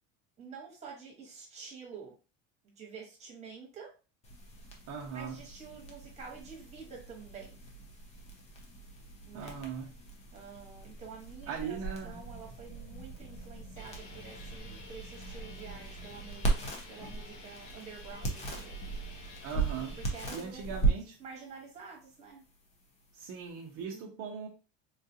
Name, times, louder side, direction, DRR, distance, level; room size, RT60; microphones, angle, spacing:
voice 1, 0.4-2.1 2.6-3.9 5.1-7.6 9.2-9.6 10.3-18.8 20.0-20.9 21.2-22.4 23.9-24.3, right 5 dB, 15° right, -2 dB, 1.1 m, -48 dB
sound 1, 4.2-23.8, right 3 dB, 20° left, 0.4 m, -38 dB
voice 2, 4.9-5.4 9.3-9.9 11.5-12.2 19.4-20.0 20.3-21.1 23.1-24.5, right 6 dB, 35° right, -1 dB, 0.6 m, -39 dB
sound 2, 13.8-20.3, left 4 dB, 70° left, 1.0 m, -51 dB
3.8 x 2.4 x 2.7 m, 0.33 s
cardioid pair, 160°, 38 cm